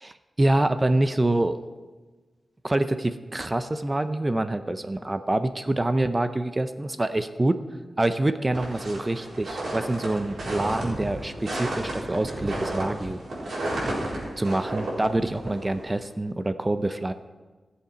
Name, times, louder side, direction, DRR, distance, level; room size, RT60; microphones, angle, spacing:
voice 1, 0.0-1.6 2.6-7.6 8.0-13.2 14.4-17.1, right 2 dB, 20° right, 10 dB, 0.5 m, -26 dB
sound 1, 8.5-16.0, right 1 dB, 80° right, 4.0 m, -32 dB
16.0 x 7.1 x 5.1 m, 1.3 s
wide cardioid pair, 160°, 0 cm